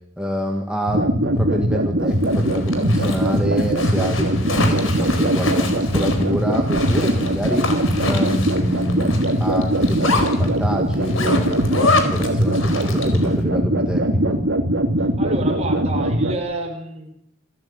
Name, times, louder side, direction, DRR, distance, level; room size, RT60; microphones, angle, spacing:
voice 1, 0.2-7.7 8.0-14.4, equal, 5° right, 1 dB, 2.0 m, -27 dB
sound 1, 0.9-16.3, right 1 dB, 60° right, 2.9 m, -21 dB
Zipper (clothing), 2.1-13.3, left 3 dB, 75° left, 4.3 m, -26 dB
voice 2, 15.2-17.1, right 2 dB, 30° right, 3 dB, 5.4 m, -29 dB
28.0 x 14.0 x 8.9 m, 0.76 s
head